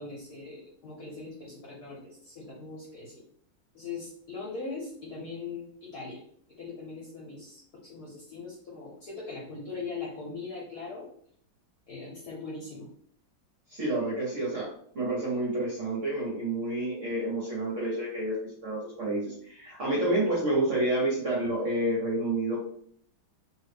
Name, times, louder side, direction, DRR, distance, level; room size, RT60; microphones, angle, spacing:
voice 1, 0.0-3.2 3.7-6.2 6.6-11.1 11.9-12.9, left 4 dB, 60° left, -3 dB, 1.1 m, -40 dB
voice 2, 13.7-22.6, right 1 dB, 60° right, -4 dB, 0.8 m, -29 dB
3.0 x 2.5 x 3.3 m, 0.63 s
omnidirectional pair, 2.1 m